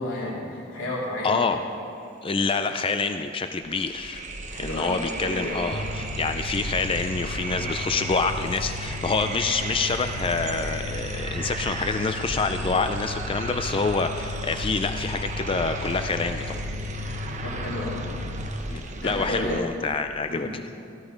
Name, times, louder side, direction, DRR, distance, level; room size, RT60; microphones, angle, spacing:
voice 1, 0.0-1.5 4.5-5.6 17.4-18.0 19.0-19.6 20.3-20.5, left 1 dB, 80° left, -5 dB, 3.3 m, -32 dB
voice 2, 1.2-1.6 2.2-4.2 4.6-16.6 16.9-17.0 18.7-20.6, left 4 dB, 30° left, 8 dB, 0.4 m, -27 dB
sound 1, 2.6-2.7 2.9-19.6, right 3 dB, 40° right, 1.1 m, -35 dB
Mechanical fan, 5.7-18.5, left 3 dB, 70° right, 1.1 m, -35 dB
16.5 x 13.5 x 5.1 m, 2.6 s
head